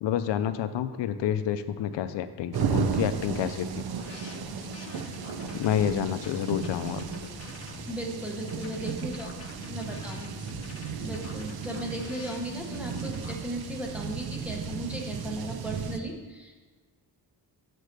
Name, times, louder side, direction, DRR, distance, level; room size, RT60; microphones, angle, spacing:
voice 1, 0.0-3.8 5.5-7.0, left 10 dB, 80° left, 11 dB, 0.5 m, -29 dB
sound 1, 2.5-16.0, right 7 dB, 60° right, 0.6 m, -35 dB
sound 2, 3.9-13.4, left 3 dB, 35° left, 0.9 m, -44 dB
voice 2, 7.9-9.3 9.7-10.3 11.0-16.7, right 1 dB, 5° right, 0 dB, 0.9 m, -36 dB
6.4 x 4.3 x 6.6 m, 1.4 s
wide cardioid pair, 170°, 42 cm